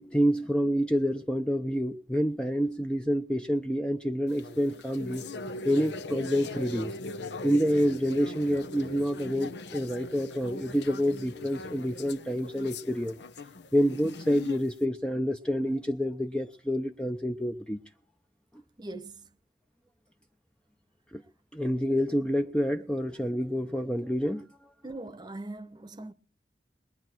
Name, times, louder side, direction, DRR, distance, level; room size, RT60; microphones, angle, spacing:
voice 1, 0.0-5.2 5.6-6.9 7.4-13.2 13.7-17.8 21.1-21.2 21.5-24.7, equal, 5° left, 0.7 m, -28 dB
sound 1, 4.3-14.8, left 2 dB, 75° left, 1.0 m, -40 dB
voice 2, 18.8-19.3 24.8-26.1, right 2 dB, 25° right, 1.0 m, -41 dB
22.0 x 9.5 x 4.5 m
head